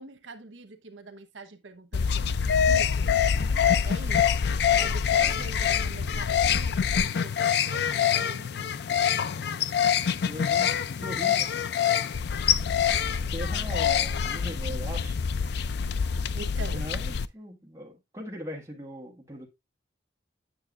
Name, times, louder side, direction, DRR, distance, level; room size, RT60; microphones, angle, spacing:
voice 1, 0.0-3.1 3.8-4.4 4.7-8.8 16.3-16.9, right 3 dB, 90° right, 1.0 m, -43 dB
sound 1, 1.9-17.2, left 7 dB, 60° left, 0.4 m, -25 dB
voice 2, 3.4-3.8 10.1-11.6 12.7-15.2 16.6-19.5, equal, 15° right, 1.6 m, -40 dB
8.7 x 6.7 x 2.4 m
head